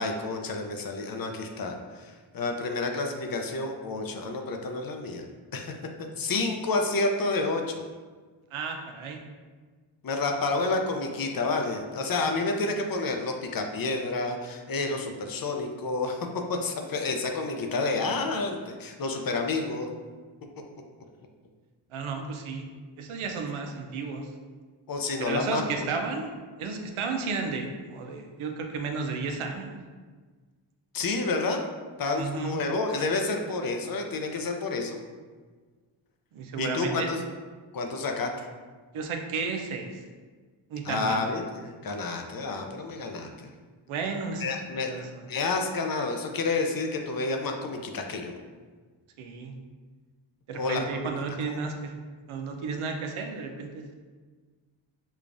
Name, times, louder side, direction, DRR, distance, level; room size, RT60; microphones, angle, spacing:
voice 1, 0.0-5.2 5.5-5.7 6.2-7.9 10.0-19.9 24.9-25.7 30.9-31.6 32.0-35.0 36.6-37.2 37.7-38.5 40.8-43.5 44.4-48.3 50.5-51.1 51.4-51.6, left 3 dB, 50° left, 3 dB, 0.5 m, -29 dB
voice 2, 8.5-9.2 21.9-22.7 23.0-24.3 25.2-26.3 26.6-29.8 32.1-32.6 36.3-37.1 38.9-40.0 40.7-41.2 43.9-44.4 44.8-45.3 49.2-49.6 50.5-51.9 52.3-53.9, right 4 dB, 85° right, 3 dB, 0.6 m, -33 dB
4.9 x 2.3 x 2.5 m, 1.4 s
cardioid pair, 65°, 48 cm